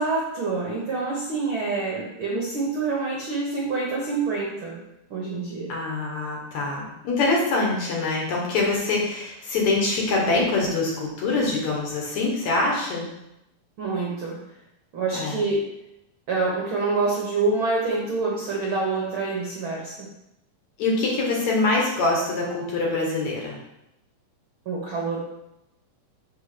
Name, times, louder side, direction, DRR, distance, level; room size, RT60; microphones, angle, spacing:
voice 1, 0.0-4.8 5.1-5.7 13.8-14.4 14.9-15.6 16.3-20.1 24.6-25.2, right 3 dB, 60° right, -4 dB, 1.4 m, -26 dB
voice 2, 5.7-13.1 15.1-15.4 20.8-23.6, left 3 dB, 60° left, -2 dB, 2.6 m, -24 dB
6.4 x 5.6 x 5.0 m, 0.88 s
omnidirectional pair, 4.0 m